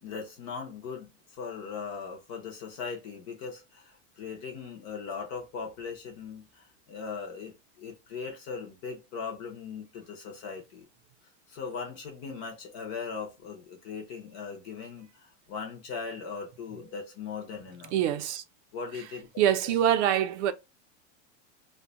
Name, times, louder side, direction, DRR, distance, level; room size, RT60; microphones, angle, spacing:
voice 1, 0.0-10.9 11.5-17.9 18.7-19.3, left 5 dB, 25° left, 0.3 m, -39 dB
voice 2, 17.9-18.4 19.4-20.5, right 10 dB, 70° right, 0.5 m, -24 dB
2.6 x 2.1 x 3.8 m
supercardioid pair, 170°, 36 cm